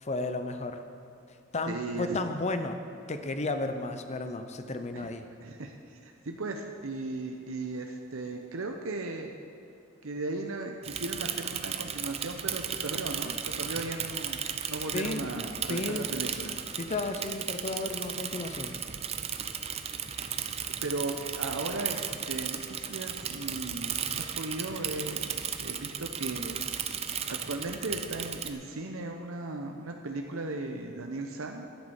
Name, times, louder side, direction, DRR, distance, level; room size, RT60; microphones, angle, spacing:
voice 1, 0.0-0.8 1.5-2.8 3.1-5.3 14.9-15.3 15.7-16.1 16.8-18.7, left 2 dB, 35° left, 8 dB, 0.7 m, -33 dB
voice 2, 1.7-2.2 4.9-5.1 5.4-9.3 10.0-14.4 14.7-16.6 20.8-25.3 25.6-26.6 27.3-31.6, right 2 dB, 70° right, 3 dB, 0.8 m, -36 dB
Bicycle / Mechanisms, 10.8-28.5, right 8 dB, 30° right, 0.5 m, -35 dB
10.5 x 8.3 x 7.1 m, 2.7 s
head